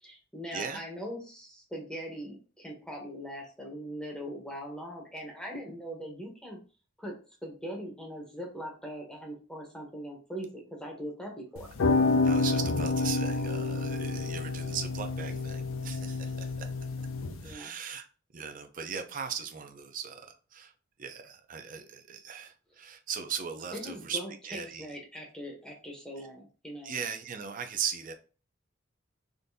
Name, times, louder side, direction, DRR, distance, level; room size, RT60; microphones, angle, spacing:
voice 1, 0.0-6.6 7.0-7.1 7.4-11.7 17.4-17.8 23.7-26.9, equal, 5° left, -1 dB, 0.7 m, -41 dB
sound 1, 11.6-17.5, left 3 dB, 80° left, 0.5 m, -29 dB
voice 2, 12.2-16.7 17.4-18.1 18.3-20.7 21.0-24.9 26.2-26.3 26.8-28.1, right 7 dB, 40° right, 7 dB, 0.5 m, -38 dB
3.7 x 2.6 x 2.6 m, 0.35 s
head